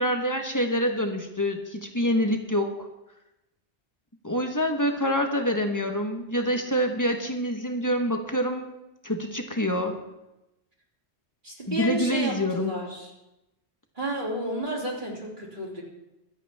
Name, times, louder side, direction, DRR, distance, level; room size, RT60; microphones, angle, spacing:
voice 1, 0.0-2.9 4.2-8.7 9.0-10.0 11.7-12.8, equal, 15° left, 4 dB, 1.2 m, -26 dB
voice 2, 11.4-13.1 13.9-15.8, right 1 dB, 45° right, -4 dB, 3.2 m, -31 dB
24.5 x 8.4 x 3.6 m, 0.95 s
omnidirectional pair, 1.2 m